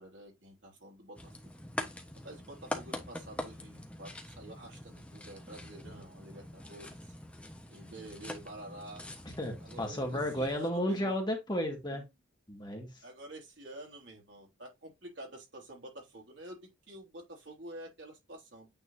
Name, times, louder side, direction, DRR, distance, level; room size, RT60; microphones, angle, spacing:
voice 1, 0.0-1.4 2.2-7.0 7.7-9.0 9.6-11.2 11.8-12.1 13.0-18.7, right 1 dB, 60° right, 3.4 m, -49 dB
sound 1, 1.2-10.5, left 1 dB, 5° left, 1.1 m, -44 dB
voice 2, 9.4-12.0 12.5-12.9, equal, 20° left, 1.8 m, -33 dB
9.1 x 4.1 x 2.7 m
head